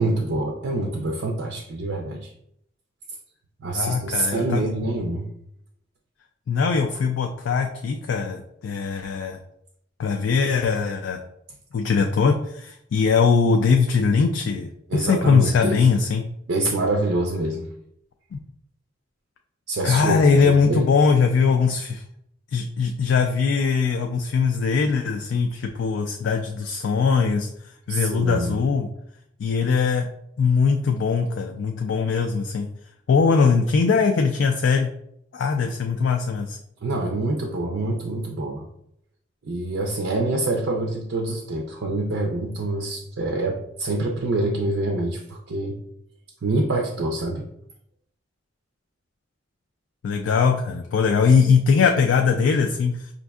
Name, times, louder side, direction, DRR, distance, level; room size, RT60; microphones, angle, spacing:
voice 1, 0.0-2.3 3.6-5.3 14.9-15.8 16.5-17.7 19.7-20.9 27.9-28.6 36.8-38.7 39.4-45.8 46.4-47.5, right 2 dB, 70° right, 1 dB, 0.5 m, -26 dB
voice 2, 3.7-4.7 6.5-9.4 10.0-11.2 11.7-16.2 18.3-18.4 19.8-22.0 22.5-28.9 29.4-30.1 30.4-32.7 33.1-34.9 35.3-36.6 50.0-53.1, left 5 dB, 70° left, 3 dB, 0.3 m, -21 dB
5.1 x 2.6 x 2.3 m, 0.74 s
head